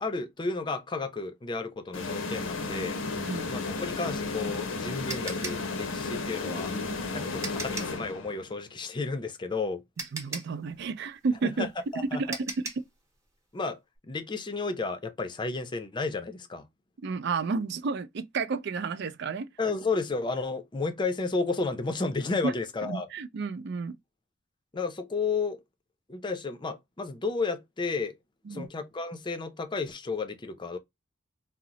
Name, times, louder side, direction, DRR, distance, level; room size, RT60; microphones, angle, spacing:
voice 1, 0.0-3.0 3.5-6.7 7.1-9.8 11.4-11.7 11.9-12.4 13.5-16.7 19.6-23.1 24.7-25.6 26.1-28.1 28.5-30.8, left 4 dB, 25° left, 0.5 m, -32 dB
sound 1, 1.9-8.6, left 3 dB, 85° left, 0.6 m, -33 dB
voice 2, 3.2-3.5 7.1-7.3 10.1-11.7 12.0-12.7 17.0-19.5 22.4-22.5 22.8-24.0 28.5-28.7, right 4 dB, 60° right, 0.4 m, -31 dB
sound 2, 5.1-8.1 9.5-9.6 10.0-12.9, right 3 dB, 15° right, 0.8 m, -39 dB
2.9 x 2.0 x 3.7 m
head